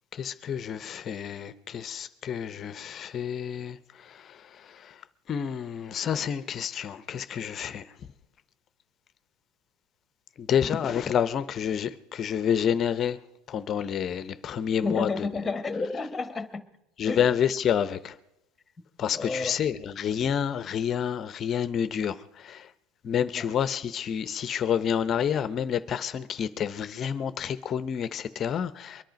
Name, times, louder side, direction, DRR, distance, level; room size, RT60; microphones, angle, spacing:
voice 1, 0.1-5.0 5.3-7.9 10.4-13.2 13.5-15.3 17.0-18.2 19.0-22.7 23.0-29.0, left 8 dB, 35° left, 0.6 m, -29 dB
voice 2, 14.8-16.7 17.1-17.3 19.1-19.6 23.3-23.5, left 3 dB, 10° left, 1.2 m, -31 dB
23.0 x 10.5 x 5.1 m
supercardioid pair, 125°, 0 cm